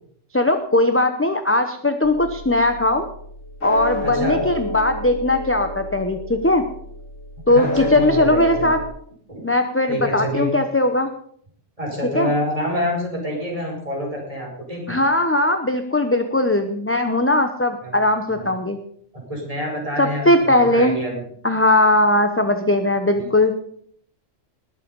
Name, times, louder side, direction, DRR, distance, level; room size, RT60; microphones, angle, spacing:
voice 1, 0.3-3.1 3.6-6.6 7.5-8.8 9.4-11.1 12.1-12.3 14.9-18.8 20.0-21.0 21.4-23.6, left 1 dB, 10° left, 7 dB, 0.7 m, -19 dB
sound 1, 2.0-8.9, left 1 dB, 80° left, 3.0 m, -29 dB
voice 2, 4.0-4.4 7.5-8.7 9.3-9.5 9.9-10.5 11.8-15.0 17.8-17.9 18.4-18.5 19.1-21.2 23.1-23.3, equal, 25° right, -1 dB, 5.0 m, -27 dB
20.0 x 7.5 x 5.4 m, 0.64 s
omnidirectional pair, 1.3 m